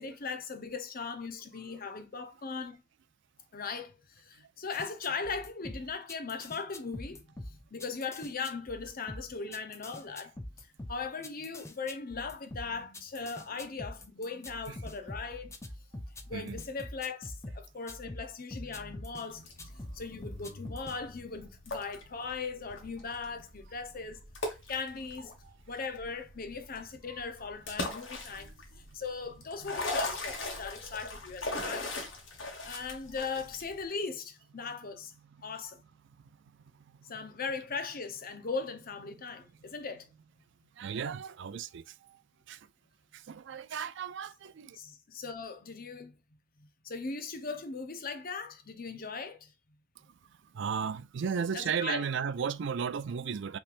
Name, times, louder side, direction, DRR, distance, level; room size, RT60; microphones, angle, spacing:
voice 1, 0.0-2.8 3.5-10.3 10.9-15.5 16.3-24.3 24.7-25.3 25.7-28.5 28.9-31.9 32.6-35.1 35.4-35.8 37.1-40.1 44.7-46.2 46.6-49.5 51.5-52.0, left 4 dB, 50° left, 0.8 m, -39 dB
sound 1, 4.7-19.3 19.6-21.0, left 1 dB, 15° left, 0.6 m, -44 dB
voice 2, 16.3-16.6 25.4-25.5 27.1-27.3 28.3-28.5 29.6-29.8 33.4-33.6 35.2-35.5 37.5-37.7 40.8-42.2 42.5-42.6 43.1-44.8 50.5-53.6, right 6 dB, 65° right, 0.4 m, -35 dB
sound 2, 19.3-33.8, left 2 dB, 70° left, 1.6 m, -40 dB
5.7 x 3.3 x 2.5 m
head